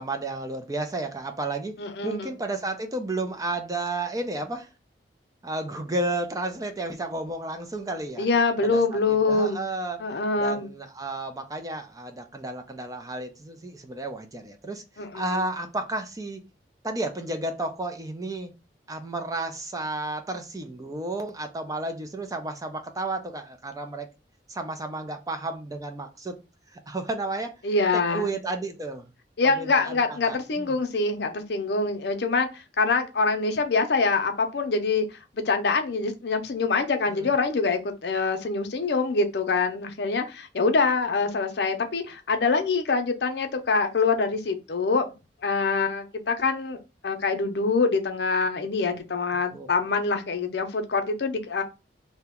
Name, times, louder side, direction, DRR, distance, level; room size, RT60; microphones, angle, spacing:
voice 1, 0.0-4.7 5.4-8.3 8.7-10.0 10.4-16.4 16.8-18.5 18.9-24.1 24.5-26.4 26.7-27.5 27.9-29.0 29.6-30.7 37.1-37.3 49.5-49.7, right 2 dB, 20° right, 0.4 m, -32 dB
voice 2, 1.8-2.3 8.2-9.6 10.0-10.7 15.0-15.5 27.6-28.3 29.4-35.1 35.3-45.0 45.4-46.8 47.0-51.6, left 4 dB, 65° left, 0.6 m, -25 dB
2.8 x 2.1 x 3.5 m
head